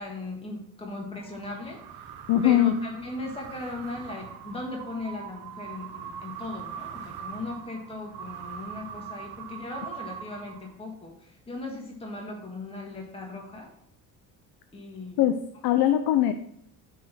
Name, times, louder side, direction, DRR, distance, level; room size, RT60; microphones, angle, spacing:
voice 1, 0.0-2.1 2.4-13.7 14.7-15.2, left 2 dB, 15° left, 0 dB, 1.5 m, -38 dB
sound 1, 1.2-10.9, right 8 dB, 70° right, 0.8 m, -42 dB
voice 2, 2.3-2.7 15.2-16.3, left 12 dB, 65° left, 9 dB, 0.6 m, -21 dB
6.1 x 3.9 x 6.0 m, 0.69 s
supercardioid pair, 85°, 41 cm